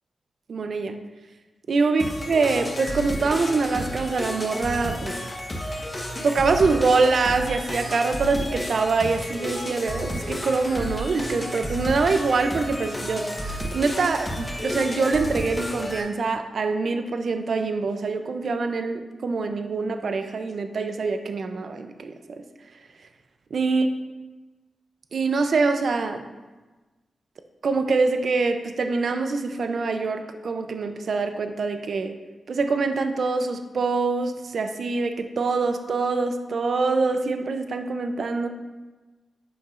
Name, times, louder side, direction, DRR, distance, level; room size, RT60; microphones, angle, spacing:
voice 1, 0.5-1.0 1.7-5.2 6.2-22.4 23.5-23.9 25.1-26.2 27.6-32.2 32.5-38.5, right 4 dB, 60° right, 7 dB, 0.5 m, -24 dB
sound 1, 2.0-16.0, equal, 20° left, 1.1 m, -32 dB
10.0 x 7.0 x 2.5 m, 1.2 s
wide cardioid pair, 135°, 0 cm